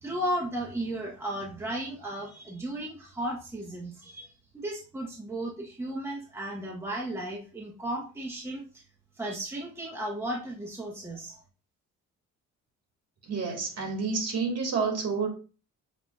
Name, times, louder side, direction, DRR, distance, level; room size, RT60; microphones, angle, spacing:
voice 1, 0.0-4.3 4.5-8.6 9.2-11.4, right 1 dB, 10° right, -1 dB, 1.0 m, -34 dB
voice 2, 13.3-15.3, right 5 dB, 55° right, 1 dB, 1.8 m, -29 dB
7.1 x 2.8 x 2.4 m, 0.35 s
cardioid pair, 90°, 30 cm